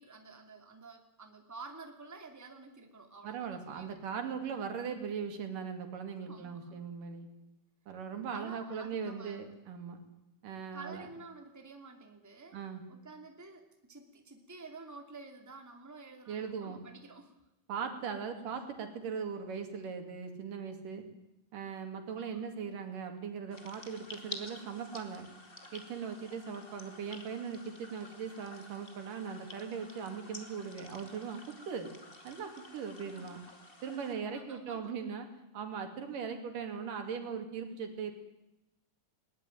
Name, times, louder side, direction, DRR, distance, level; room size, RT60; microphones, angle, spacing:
voice 1, 0.0-4.9 6.3-6.9 8.3-9.5 10.7-12.6 12.9-17.4 22.1-22.4 33.0-33.4 33.9-34.9, right 3 dB, 5° right, 4 dB, 2.4 m, -51 dB
voice 2, 3.2-7.3 7.9-10.0 10.4-11.1 12.5-12.8 16.3-16.8 17.7-21.0 21.5-25.3 25.7-31.4 31.7-31.9 32.2-33.4 33.8-35.3 35.5-38.1, right 6 dB, 80° right, 5 dB, 4.1 m, -39 dB
sound 1, 23.5-34.1, left 2 dB, 20° left, 2.2 m, -50 dB
21.0 x 19.5 x 9.3 m, 0.91 s
omnidirectional pair, 3.7 m